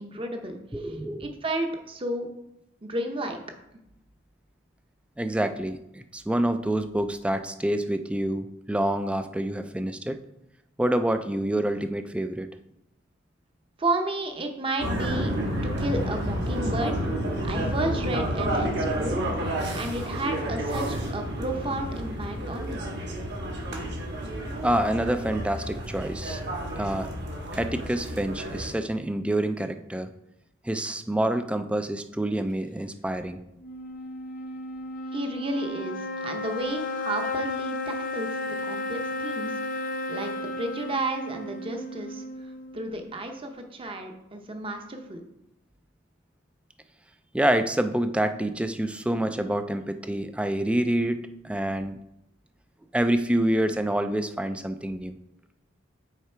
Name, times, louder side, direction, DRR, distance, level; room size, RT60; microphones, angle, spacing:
voice 1, 0.0-0.6 0.8-0.9 1.2-2.3 2.8-3.4 13.8-15.3 15.6-17.0 17.4-19.2 19.7-22.8 35.1-38.4 38.7-39.6 40.1-42.2 42.7-45.2, right 1 dB, 25° right, 5 dB, 0.8 m, -32 dB
voice 2, 0.7-1.3 5.2-10.2 10.8-12.5 24.6-26.4 26.8-27.1 27.5-30.1 30.6-33.4 47.3-52.0 52.9-55.2, right 1 dB, 5° right, 9 dB, 0.3 m, -27 dB
sound 1, 14.8-28.7, right 1 dB, 60° right, 1.5 m, -30 dB
sound 2, 33.6-43.0, left 2 dB, 45° left, 0.5 m, -33 dB
6.6 x 4.7 x 4.4 m, 0.85 s
head